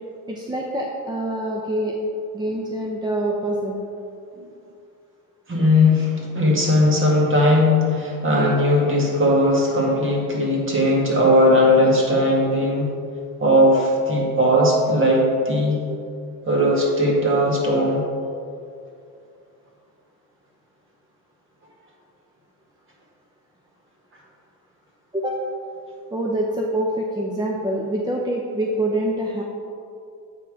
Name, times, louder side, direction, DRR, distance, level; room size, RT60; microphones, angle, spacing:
voice 1, 0.3-1.9 2.3-3.8 25.1-25.4 26.1-29.4, right 1 dB, 10° right, -1 dB, 0.6 m, -25 dB
voice 2, 5.5-12.9 13.4-15.8 16.5-18.0, left 1 dB, 35° right, -2 dB, 1.8 m, -18 dB
8.1 x 4.5 x 4.8 m, 2.5 s
cardioid pair, 110°, 37 cm